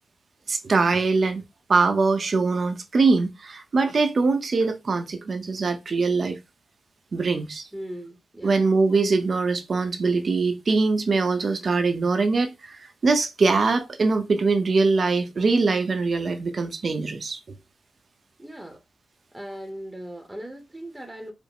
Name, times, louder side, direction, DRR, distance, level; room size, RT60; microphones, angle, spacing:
voice 1, 0.5-1.4 1.7-6.4 7.1-7.7 8.4-17.4, right 4 dB, 40° right, 0.7 m, -22 dB
voice 2, 7.7-8.7 18.4-18.8 19.3-21.3, equal, 10° right, 0.8 m, -38 dB
5.1 x 2.0 x 4.8 m
wide cardioid pair, 145°, 0 cm